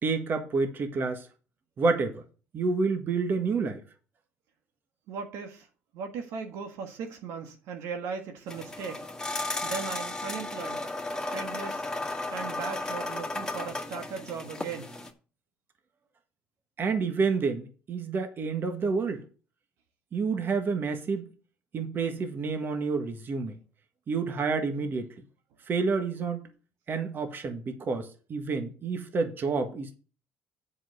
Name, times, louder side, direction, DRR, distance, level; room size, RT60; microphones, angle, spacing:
voice 1, 0.0-1.3 1.8-2.2 2.5-3.8 16.8-19.2 20.1-21.3 21.7-23.6 24.1-25.1 25.7-26.5 26.9-29.9, right 4 dB, 45° right, 1.6 m, -29 dB
voice 2, 5.1-5.7 5.9-9.0 9.6-10.8 11.2-11.8 12.3-14.9, right 6 dB, 75° right, 1.5 m, -38 dB
sound 1, 8.5-15.1, left 2 dB, 15° left, 1.9 m, -34 dB
7.4 x 5.7 x 6.8 m
supercardioid pair, 75°, 5 cm